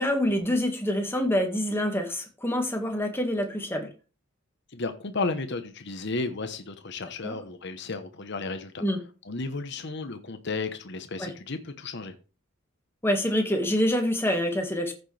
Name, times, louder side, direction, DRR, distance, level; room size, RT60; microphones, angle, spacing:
voice 1, 0.0-3.9 7.2-7.4 8.8-9.0 11.2-11.3 13.0-14.9, equal, 10° left, 1.9 m, -26 dB
voice 2, 4.7-8.8 9.2-12.1, left 3 dB, 60° left, 1.1 m, -33 dB
14.5 x 6.6 x 3.4 m
head